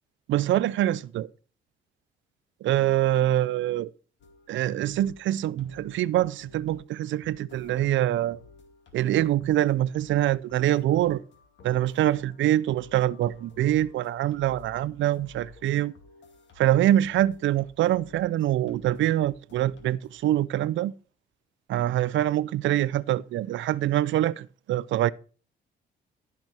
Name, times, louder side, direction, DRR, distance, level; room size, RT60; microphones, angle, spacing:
voice 1, 0.3-1.3 2.6-3.9 4.5-8.4 8.9-11.2 11.6-15.9 16.6-20.9 21.7-25.1, right 13 dB, 75° right, 0.5 m, -24 dB
sound 1, 4.2-20.3, left 4 dB, 65° left, 2.4 m, -54 dB
13.5 x 6.0 x 4.4 m
cardioid pair, 90°, 20 cm